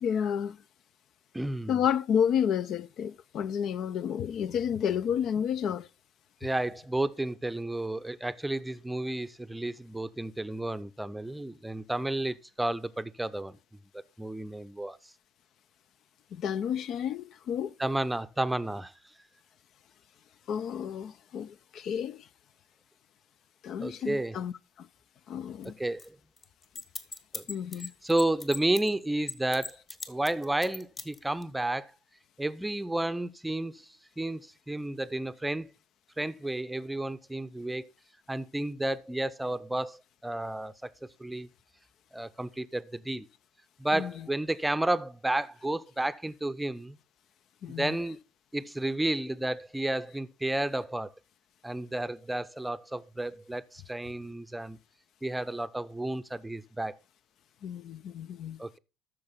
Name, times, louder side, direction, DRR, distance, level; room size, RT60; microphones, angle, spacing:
voice 1, 0.0-0.6 1.7-5.9 16.3-17.7 20.5-22.3 23.6-24.5 24.8-24.9 25.3-25.7 27.5-27.9 43.9-44.1 47.6-48.0 57.6-58.6, left 8 dB, 45° left, 0.4 m, -31 dB
voice 2, 1.3-1.8 6.4-13.6 14.2-15.0 17.8-18.9 23.8-24.4 25.6-26.2 27.3-27.4 28.0-29.8 30.1-31.9 32.4-33.9 34.2-35.7 36.2-37.9 38.3-40.9 41.2-41.5 42.1-43.3 43.8-47.0 47.8-48.2 48.5-51.1 51.6-54.8 55.2-57.0 58.6-58.8, right 1 dB, 5° right, 0.6 m, -32 dB
sound 1, 25.6-25.7 26.0-26.1 26.4-28.9 29.3-31.4, left 3 dB, 30° left, 1.6 m, -39 dB
13.5 x 6.4 x 4.0 m
figure-of-eight pair, 65°, 0 cm